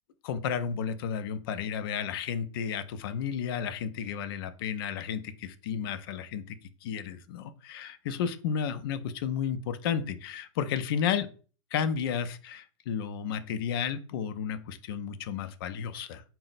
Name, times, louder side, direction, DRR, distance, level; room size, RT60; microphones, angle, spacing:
voice 1, 0.2-6.6 6.8-11.3 11.7-16.2, left 7 dB, 45° left, 11 dB, 0.4 m, -32 dB
4.2 x 2.0 x 3.9 m, 0.39 s
supercardioid pair, 175°, 17 cm